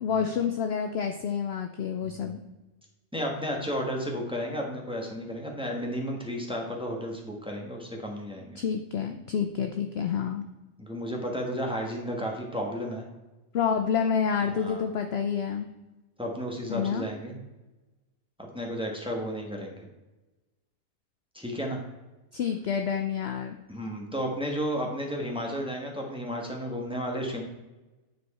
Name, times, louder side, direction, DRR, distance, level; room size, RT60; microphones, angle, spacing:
voice 1, 0.0-2.4 8.6-10.4 13.5-15.7 16.7-17.1 22.3-23.6, left 7 dB, 60° left, 6 dB, 0.7 m, -28 dB
voice 2, 2.0-2.4 3.1-8.6 10.8-13.1 14.5-14.8 16.2-17.4 18.4-19.8 21.3-21.8 23.7-27.4, equal, 5° right, 0 dB, 1.1 m, -33 dB
9.3 x 4.7 x 4.2 m, 1.1 s
omnidirectional pair, 1.5 m